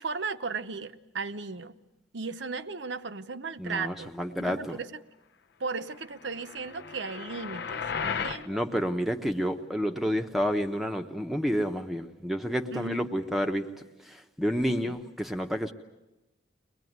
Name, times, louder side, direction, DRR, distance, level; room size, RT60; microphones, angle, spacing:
voice 1, 0.0-1.7 2.1-4.1 4.4-5.0 5.6-8.6 12.7-13.1 14.7-15.0, right 4 dB, 70° right, 10 dB, 0.9 m, -36 dB
voice 2, 3.6-4.8 8.5-13.7 14.1-15.7, equal, ahead, 5 dB, 0.9 m, -29 dB
sound 1, 6.2-8.5, left 6 dB, 55° left, 0.8 m, -35 dB
23.0 x 20.5 x 9.3 m, 1.0 s
head